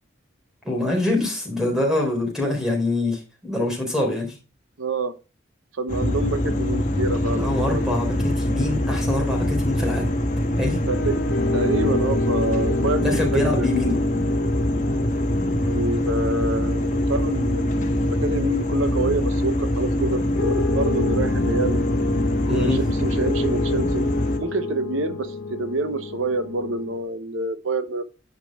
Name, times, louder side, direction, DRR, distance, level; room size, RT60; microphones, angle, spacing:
voice 1, 0.6-4.4 7.3-10.1 10.6-10.8 12.8-14.0 22.5-22.8, left 2 dB, 5° right, 3.7 m, -25 dB
voice 2, 4.8-5.1 5.7-8.0 10.9-11.2 11.5-13.7 15.6-21.8 22.5-24.1 24.4-28.0, right 2 dB, 90° right, 0.9 m, -27 dB
sound 1, 5.9-24.4, left 1 dB, 40° left, 1.3 m, -23 dB
sound 2, 10.9-19.0 20.3-27.0, left 3 dB, 75° left, 1.1 m, -30 dB
10.5 x 5.3 x 3.5 m
head